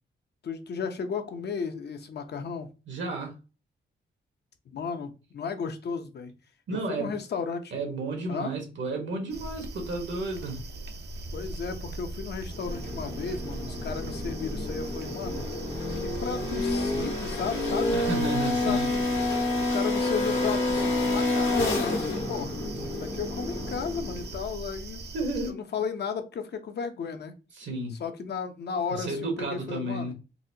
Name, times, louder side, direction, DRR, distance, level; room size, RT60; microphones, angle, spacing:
voice 1, 0.4-2.7 4.7-6.3 6.7-7.7 8.3-8.5 11.3-15.5 16.0-18.0 18.6-22.5 23.0-25.1 25.4-27.3 28.0-30.1, left 6 dB, 60° left, 0.6 m, -34 dB
voice 2, 2.9-3.4 6.7-7.2 7.7-10.7 17.9-18.9 25.1-25.6 27.5-28.0 28.9-30.1, right 2 dB, 75° right, 1.3 m, -32 dB
sound 1, 9.3-25.5, right 2 dB, 60° right, 0.6 m, -39 dB
sound 2, 12.5-24.3, left 2 dB, 85° left, 1.3 m, -29 dB
4.0 x 2.1 x 2.7 m
cardioid pair, 105°, 19 cm